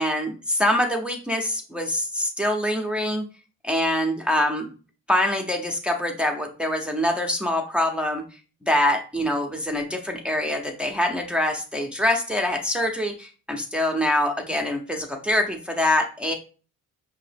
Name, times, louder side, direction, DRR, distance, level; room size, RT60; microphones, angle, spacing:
voice 1, 0.0-3.2 3.7-4.7 5.1-8.2 8.6-16.3, left 1 dB, 5° right, 2 dB, 0.6 m, -24 dB
5.0 x 2.8 x 3.4 m, 0.37 s
cardioid pair, 90°, 30 cm